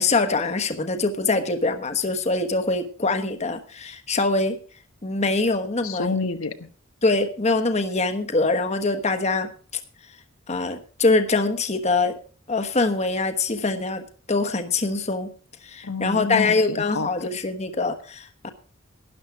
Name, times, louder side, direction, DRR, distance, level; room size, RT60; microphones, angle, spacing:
voice 1, 0.0-4.6 5.0-6.1 7.0-9.5 10.5-12.2 12.5-15.3 15.6-18.5, left 3 dB, 35° left, 8 dB, 1.2 m, -23 dB
voice 2, 5.8-6.7 15.8-17.3, left 4 dB, 90° left, 8 dB, 1.3 m, -29 dB
12.5 x 11.0 x 4.8 m, 0.40 s
head